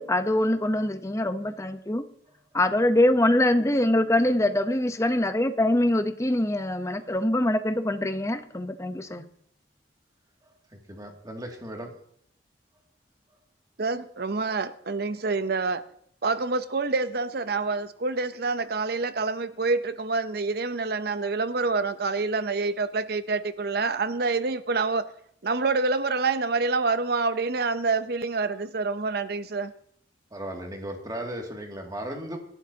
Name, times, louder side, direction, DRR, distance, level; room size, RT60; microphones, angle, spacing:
voice 1, 0.0-2.0 2.5-9.2, left 1 dB, 15° left, 0.8 m, -24 dB
voice 2, 10.4-11.9 30.3-32.4, right 1 dB, 20° right, 2.4 m, -36 dB
voice 3, 13.8-15.8 16.2-25.1 25.4-29.7, right 3 dB, 60° right, 0.7 m, -27 dB
26.0 x 12.0 x 2.9 m
head